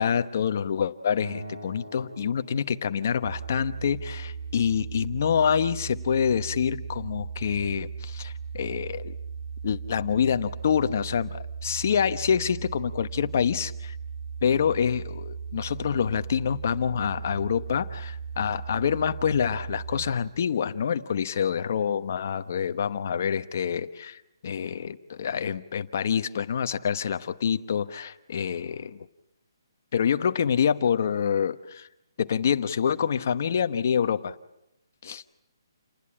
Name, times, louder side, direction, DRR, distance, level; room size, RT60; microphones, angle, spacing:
voice 1, 0.0-9.2 9.6-14.0 14.4-29.0 29.9-31.9 32.2-34.4 35.0-35.2, left 7 dB, 35° left, 11 dB, 1.0 m, -26 dB
Acoustic guitar, 1.2-4.5, right 1 dB, 65° right, 7.1 m, -45 dB
sound 1, 3.2-20.1, right 6 dB, 85° right, 2.9 m, -37 dB
29.5 x 20.0 x 8.9 m, 0.84 s
hypercardioid pair, 180°, 2 cm